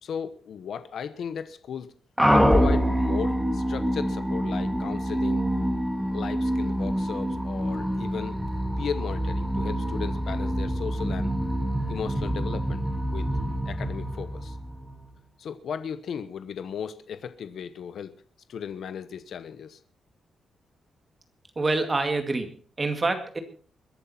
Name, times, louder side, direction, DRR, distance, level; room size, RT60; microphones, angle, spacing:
voice 1, 0.0-1.9 2.3-5.4 6.1-8.4 8.8-11.3 11.9-12.8 13.1-13.3 13.6-14.6 15.4-18.1 18.5-19.8, left 7 dB, 60° left, 11 dB, 1.0 m, -36 dB
sound 1, 2.2-15.0, equal, ahead, 1.8 m, -26 dB
voice 2, 21.6-23.4, right 3 dB, 20° right, 7 dB, 2.2 m, -27 dB
22.0 x 11.0 x 4.4 m, 0.41 s
wide cardioid pair, 170°, 0 cm